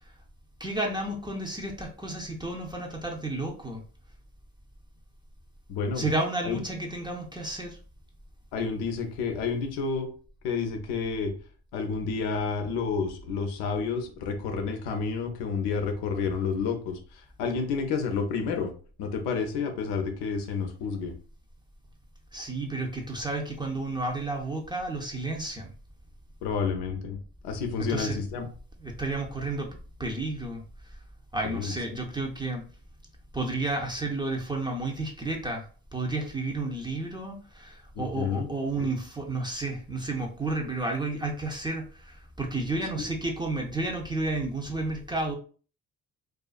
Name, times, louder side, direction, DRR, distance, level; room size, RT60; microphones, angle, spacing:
voice 1, 0.6-3.8 6.0-7.8 22.3-25.7 27.8-28.2 28.8-31.0 31.3-32.6 33.3-35.6 35.9-45.3, right 2 dB, 10° right, 1 dB, 0.6 m, -31 dB
voice 2, 5.7-6.1 6.4-6.6 8.5-10.1 10.4-11.3 11.7-18.7 19.0-21.1 26.4-28.4 31.4-31.7 38.0-38.5 38.8-38.9 43.0-43.1, left 5 dB, 85° left, 5 dB, 0.6 m, -30 dB
2.4 x 2.4 x 2.4 m, 0.40 s
supercardioid pair, 50°, 38 cm